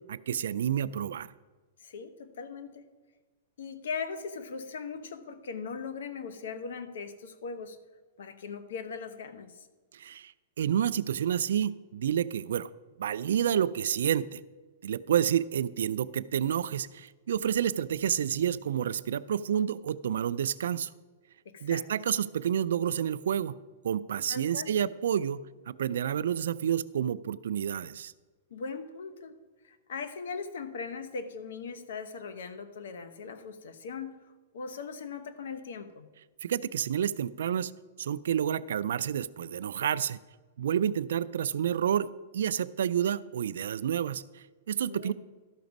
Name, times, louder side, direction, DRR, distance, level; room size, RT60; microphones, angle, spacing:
voice 1, 0.1-1.3 9.9-10.3 10.6-12.7 13.0-14.4 14.8-20.9 21.6-23.5 23.8-25.4 25.7-28.1 36.4-37.7 38.0-40.2 40.6-45.1, right 9 dB, 80° right, 16 dB, 0.3 m, -29 dB
voice 2, 1.8-2.9 3.6-7.8 8.2-9.7 21.4-21.8 24.3-24.7 28.5-29.4 29.6-34.2 34.5-36.1 44.9-45.1, left 5 dB, 75° left, 10 dB, 0.9 m, -39 dB
12.5 x 5.9 x 5.2 m, 1.3 s
supercardioid pair, 170°, 0 cm